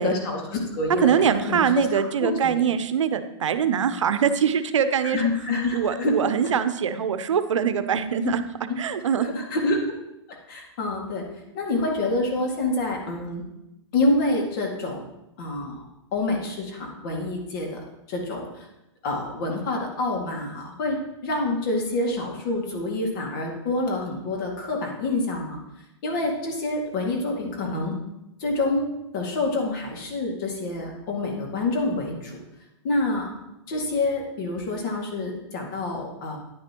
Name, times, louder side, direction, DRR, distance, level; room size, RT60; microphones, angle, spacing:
voice 1, 0.0-2.7 5.0-6.1 8.2-8.4 8.7-9.8 10.5-11.2 11.5-13.4 13.9-15.0 15.4-15.8 16.1-17.8 18.1-18.7 19.0-21.0 21.2-25.6 26.0-27.9 28.4-28.8 29.1-32.4 32.8-33.3 33.7-36.4, left 2 dB, 45° left, 0 dB, 2.1 m, -27 dB
voice 2, 1.0-5.3 5.7-8.4 8.8-9.3, right 7 dB, 90° right, 11 dB, 0.7 m, -23 dB
9.6 x 9.6 x 3.0 m, 0.91 s
hypercardioid pair, 150°, 15 cm